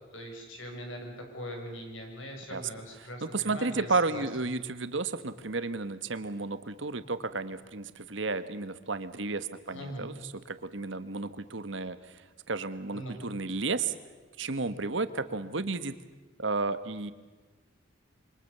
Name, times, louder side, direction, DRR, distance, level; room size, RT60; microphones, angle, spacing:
voice 1, 0.1-4.2 9.7-10.1 12.9-13.2, equal, 75° left, 3 dB, 6.6 m, -41 dB
voice 2, 3.2-13.9 14.4-15.9 16.4-17.1, right 3 dB, 65° right, 12 dB, 1.4 m, -32 dB
27.0 x 24.5 x 6.9 m, 1.3 s
head